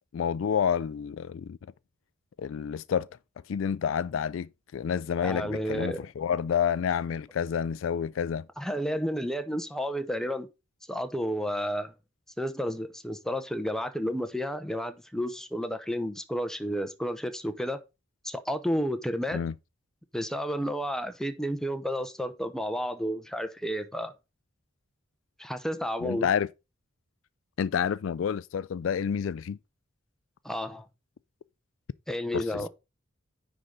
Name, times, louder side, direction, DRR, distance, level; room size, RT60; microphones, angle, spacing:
voice 1, 0.1-1.6 2.4-3.1 3.5-8.5 19.3-19.5 26.0-26.5 27.6-29.6 32.3-32.6, left 7 dB, 70° left, 0.3 m, -29 dB
voice 2, 5.2-6.0 8.6-10.5 10.9-11.9 12.4-17.8 18.2-19.4 20.1-24.1 25.4-26.3 30.4-30.9 32.1-32.7, equal, 5° left, 0.8 m, -31 dB
9.8 x 3.9 x 4.8 m
head